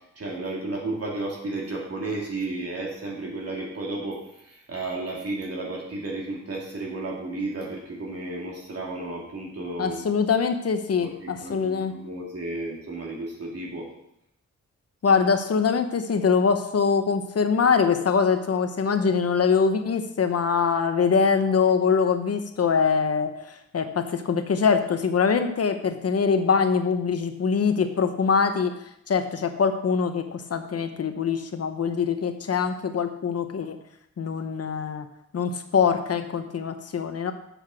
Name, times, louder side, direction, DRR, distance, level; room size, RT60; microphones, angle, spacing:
voice 1, 0.2-10.0 11.0-13.9, right 2 dB, 55° right, -2 dB, 2.4 m, -33 dB
voice 2, 9.8-12.0 15.0-28.7 29.1-33.8 34.2-35.1 35.3-37.3, left 5 dB, 55° left, 8 dB, 0.9 m, -23 dB
7.9 x 6.7 x 6.3 m, 0.78 s
wide cardioid pair, 175°, 29 cm